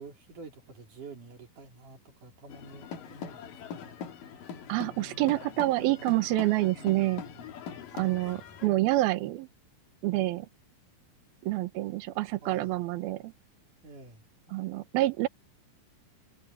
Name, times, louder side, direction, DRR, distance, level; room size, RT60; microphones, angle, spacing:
voice 1, 0.0-3.4 3.7-4.0 4.7-5.5 6.6-7.6 12.4-12.8 13.8-14.6, right 3 dB, 40° right, 5.3 m, -50 dB
sound 1, 2.5-8.7, left 7 dB, 55° left, 2.7 m, -42 dB
voice 2, 4.7-7.2 7.9-9.5 10.0-10.5 11.4-13.3 14.5-15.3, right 17 dB, 85° right, 2.1 m, -27 dB
omnidirectional pair, 5.8 m